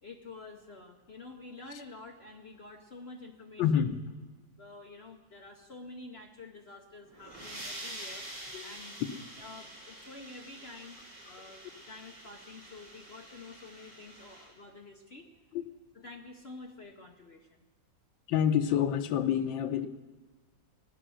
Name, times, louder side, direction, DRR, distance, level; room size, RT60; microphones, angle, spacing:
voice 1, 0.0-3.9 4.6-8.3 8.6-9.0 9.4-11.0 11.2-15.3 15.9-17.6, left 3 dB, 50° left, 3 dB, 0.8 m, -49 dB
voice 2, 3.6-4.0 8.5-8.6 9.0-9.1 15.5-15.7 18.3-19.9, left 9 dB, 85° left, 8 dB, 1.6 m, -27 dB
sound 1, 7.0-14.5, right 1 dB, 55° right, 4.4 m, -46 dB
17.0 x 10.0 x 6.3 m, 1.3 s
omnidirectional pair, 2.1 m